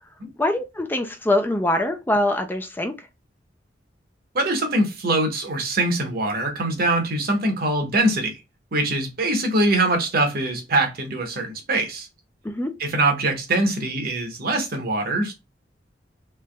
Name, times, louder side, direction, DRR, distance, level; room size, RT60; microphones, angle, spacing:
voice 1, 0.4-3.1 12.4-12.8, left 1 dB, 10° left, 0.4 m, -23 dB
voice 2, 4.3-8.4 8.7-12.1 12.8-15.5, right 2 dB, 55° right, 1.0 m, -23 dB
3.3 x 3.0 x 2.2 m
head